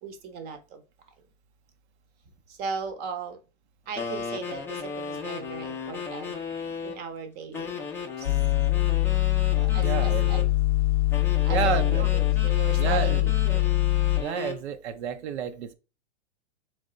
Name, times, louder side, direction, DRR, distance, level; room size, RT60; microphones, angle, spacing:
voice 1, 0.0-0.8 2.5-3.4 3.9-6.4 6.8-8.4 9.5-10.4 11.4-13.7, right 5 dB, 25° right, 0.7 m, -38 dB
sound 1, 4.0-7.0 7.5-10.5 11.1-14.6, left 5 dB, 5° left, 0.4 m, -35 dB
sound 2, 8.3-14.2, left 18 dB, 70° left, 0.5 m, -23 dB
voice 2, 9.8-10.5 11.5-12.0 12.8-13.2 14.2-15.7, right 8 dB, 65° right, 0.6 m, -30 dB
3.5 x 3.3 x 3.8 m
hypercardioid pair, 135°, 36 cm